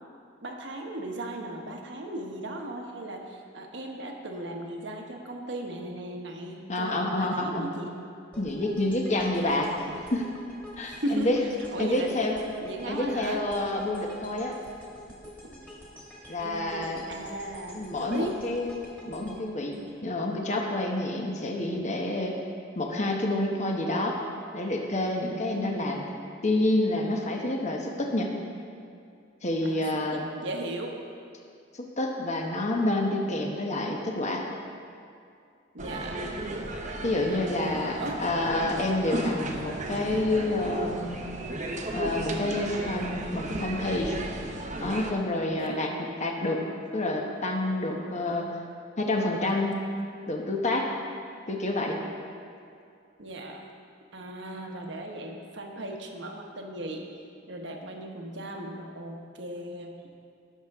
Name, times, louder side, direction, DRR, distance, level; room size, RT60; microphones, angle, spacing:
voice 1, 0.4-7.9 10.8-11.3 11.7-12.2 12.6-13.4 15.4-15.6 16.4-18.4 21.6-21.7 25.5-26.0 29.6-31.0 35.7-36.3 37.4-38.2 45.5-45.9 53.2-53.7 54.1-57.1 57.5-59.9, right 1 dB, 65° right, 1 dB, 1.2 m, -37 dB
voice 2, 6.7-7.7 8.4-9.7 10.1-10.2 10.8-11.4 11.8-12.3 12.9-14.5 16.3-17.0 17.7-18.8 19.0-22.4 22.8-24.2 24.5-26.0 26.4-28.3 29.4-30.3 31.8-34.4 37.0-41.2 41.9-44.2 44.8-45.9 46.2-46.6 46.9-48.5 49.0-49.8 50.3-50.9 51.5-52.0, left 1 dB, 40° left, 0 dB, 1.1 m, -28 dB
sound 1, 8.3-20.5, equal, 10° left, 2.0 m, -48 dB
sound 2, 35.8-45.1, right 1 dB, 40° right, 0.9 m, -34 dB
17.0 x 6.7 x 3.6 m, 2.4 s
head